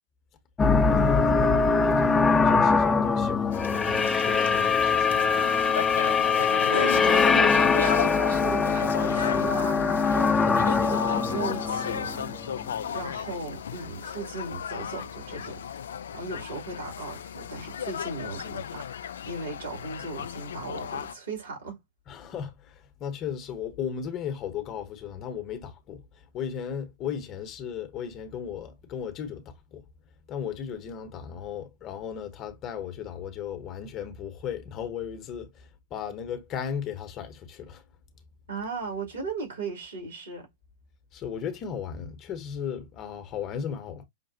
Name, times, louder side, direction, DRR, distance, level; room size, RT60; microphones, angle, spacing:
sound 1, 0.6-12.7, left 5 dB, 15° left, 0.6 m, -23 dB
voice 1, 0.9-5.2 22.1-29.8 30.3-37.8 41.1-44.0, left 7 dB, 30° left, 1.0 m, -35 dB
sound 2, 3.5-21.1, left 8 dB, 65° left, 0.4 m, -35 dB
voice 2, 6.7-12.4 12.9-15.6 16.1-18.9 19.2-21.8 38.5-40.5, right 3 dB, 65° right, 2.6 m, -37 dB
5.8 x 2.5 x 2.7 m
figure-of-eight pair, 95°, 0 cm